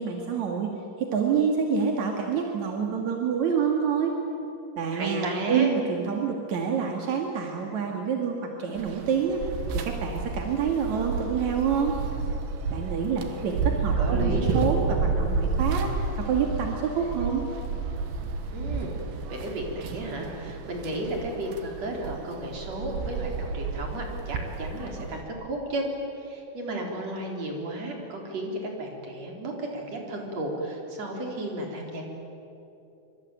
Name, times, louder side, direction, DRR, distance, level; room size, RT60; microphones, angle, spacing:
voice 1, 0.0-4.1 4.8-9.4 9.7-12.0 12.7-17.4, right 6 dB, 50° right, 1 dB, 2.4 m, -27 dB
voice 2, 4.9-5.7 14.0-14.8 18.5-19.0 19.3-25.8 26.2-32.1, right 1 dB, 35° right, 1 dB, 4.6 m, -33 dB
sound 1, 8.8-25.2, right 4 dB, 65° right, 3.8 m, -31 dB
25.5 x 25.0 x 9.3 m, 2.9 s
omnidirectional pair, 5.8 m